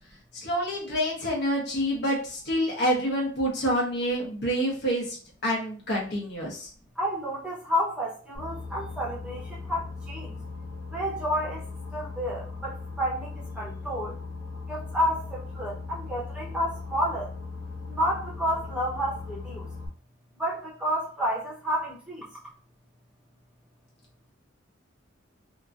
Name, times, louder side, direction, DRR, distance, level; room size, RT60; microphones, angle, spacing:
voice 1, 0.4-5.2 5.4-6.7, equal, 60° left, -2 dB, 1.0 m, -27 dB
voice 2, 7.0-10.3 10.9-11.6 11.9-14.1 14.7-17.3 17.9-19.7 20.4-22.3, equal, 5° right, -6 dB, 0.8 m, -30 dB
Boat Water vehicle, 8.3-19.9, left 3 dB, 85° left, 1.1 m, -38 dB
2.8 x 2.6 x 2.4 m, 0.40 s
head